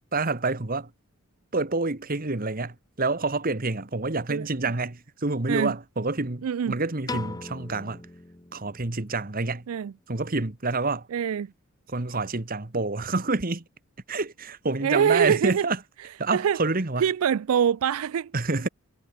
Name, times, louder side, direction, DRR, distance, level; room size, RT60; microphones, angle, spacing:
voice 1, 0.1-0.9 1.5-8.1 8.5-9.6 10.1-11.1 11.9-13.6 14.1-15.8 16.2-17.1 18.3-18.7, right 3 dB, 40° right, 1.4 m, -28 dB
voice 2, 6.4-6.8 9.7-9.9 11.1-11.5 14.8-15.6 16.3-16.6 17.0-18.3, right 8 dB, 75° right, 0.4 m, -24 dB
Piano, 7.1-9.3, left 3 dB, 15° left, 0.8 m, -39 dB
head